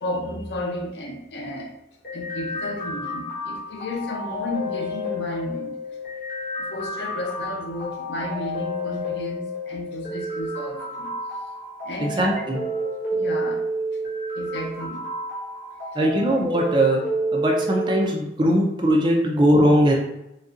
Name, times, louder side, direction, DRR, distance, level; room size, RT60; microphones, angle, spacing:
voice 1, 0.0-1.7 2.1-5.8 6.6-11.1 11.8-12.3 13.1-13.6 14.3-15.0, left 1 dB, 75° left, 1 dB, 0.6 m, -32 dB
sound 1, 2.0-18.0, equal, 55° left, 1.2 m, -30 dB
voice 2, 12.0-12.6 15.9-17.0 17.3-19.9, equal, 25° right, -1 dB, 0.5 m, -20 dB
3.9 x 2.3 x 2.5 m, 0.85 s
head